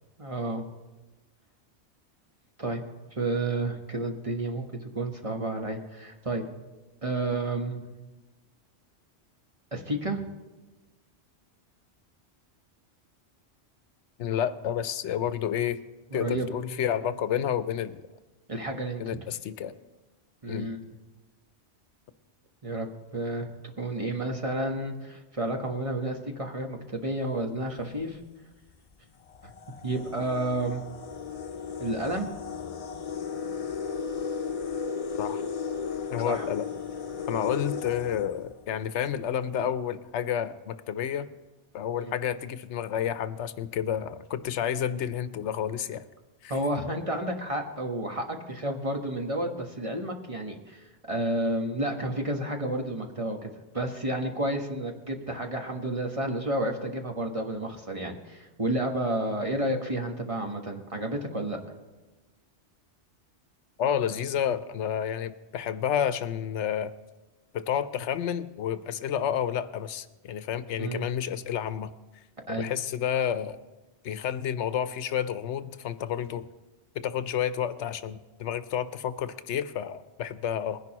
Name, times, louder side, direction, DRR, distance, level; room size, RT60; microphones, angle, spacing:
voice 1, 0.2-0.6 2.6-2.8 3.2-6.4 7.0-7.8 9.7-10.2 16.1-16.5 18.5-19.0 20.4-20.9 22.6-22.9 23.1-23.5 23.8-28.2 29.8-30.8 31.8-32.3 36.2-36.5 42.0-42.1 46.5-61.6 70.8-71.1 72.5-72.7, right 1 dB, 30° right, 3 dB, 1.2 m, -31 dB
voice 2, 14.2-15.8 16.1-18.0 19.0-19.7 20.5-20.7 35.2-35.5 36.1-36.7 37.3-41.3 41.7-46.1 46.4-46.6 63.8-66.9 67.5-71.9 72.5-73.6 74.0-76.4 76.9-80.8, left 9 dB, 85° left, 13 dB, 0.9 m, -30 dB
sound 1, 27.6-27.9 28.7-28.8 29.2-39.0, left 6 dB, 45° left, 0.5 m, -35 dB
20.5 x 10.5 x 2.9 m, 1.2 s
omnidirectional pair, 1.2 m